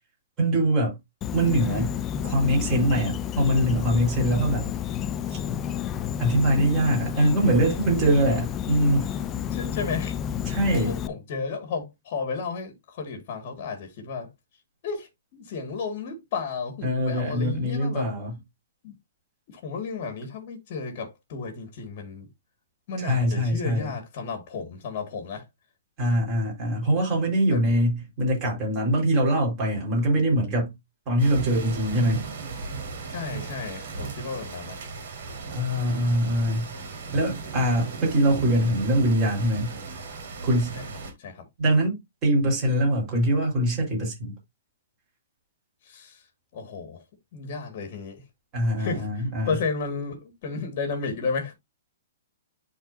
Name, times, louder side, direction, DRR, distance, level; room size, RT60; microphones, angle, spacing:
voice 1, 0.4-0.9 1.3-4.7 5.3-5.4 6.2-9.1 10.5-11.0 16.8-18.3 23.0-23.9 26.0-30.7 31.1-32.2 35.5-36.7 37.1-39.8 40.4-40.8 41.6-44.3 48.5-49.6, right 1 dB, 20° right, 4.3 m, -23 dB
Insect, 1.2-11.1, left 9 dB, 15° left, 0.3 m, -30 dB
voice 2, 9.3-10.1 10.6-14.3 14.8-18.1 18.8-18.9 19.5-22.3 22.9-25.4 27.5-27.6 33.1-34.8 40.7-40.8 41.2-41.5 45.8-46.2 46.5-47.0 47.3-48.2 48.8-51.5, left 4 dB, 35° left, 1.8 m, -33 dB
sound 1, 31.2-41.1, right 4 dB, 50° right, 3.5 m, -36 dB
11.0 x 4.1 x 2.6 m
hypercardioid pair, 170°, 0 cm